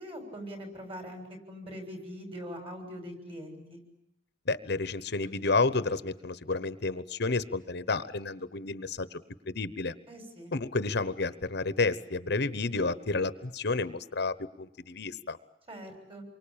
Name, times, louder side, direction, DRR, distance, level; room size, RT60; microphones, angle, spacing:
voice 1, 0.0-3.8 10.1-10.5 15.7-16.2, equal, 30° right, 6 dB, 7.1 m, -42 dB
voice 2, 4.5-9.2 9.5-9.9 10.5-15.4, left 3 dB, 60° left, 14 dB, 1.1 m, -30 dB
28.0 x 24.0 x 8.8 m, 0.78 s
head